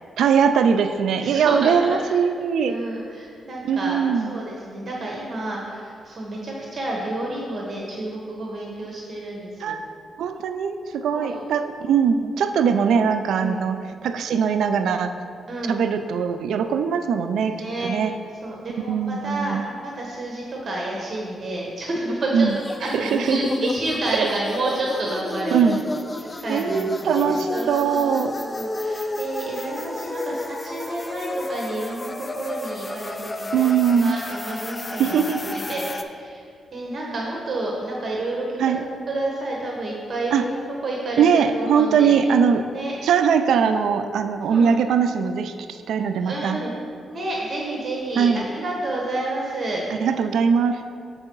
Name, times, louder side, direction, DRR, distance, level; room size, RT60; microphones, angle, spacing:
voice 1, 0.2-2.8 3.6-4.4 9.6-9.8 10.2-15.1 15.7-17.6 17.8-18.1 18.9-19.7 22.3-22.6 22.9-23.4 25.5-25.8 26.5-28.4 33.5-34.2 35.0-35.5 38.6-38.8 40.3-40.4 41.2-42.7 43.0-46.6 48.2-48.5 50.0-50.8, right 7 dB, 85° right, 8 dB, 0.3 m, -21 dB
voice 2, 1.1-2.2 2.6-9.8 11.1-11.4 13.4-13.6 15.5-15.8 17.4-17.9 18.4-22.5 22.8-25.6 26.2-35.2 35.5-36.4 36.7-38.8 39.1-40.6 40.8-42.2 42.7-43.0 44.4-44.7 46.2-46.8 47.1-49.8, right 2 dB, 50° right, -2 dB, 1.1 m, -30 dB
Noisy Riser, 22.5-36.0, left 2 dB, 25° left, 0.4 m, -31 dB
7.5 x 4.5 x 4.5 m, 2.3 s
cardioid pair, 100°, 0 cm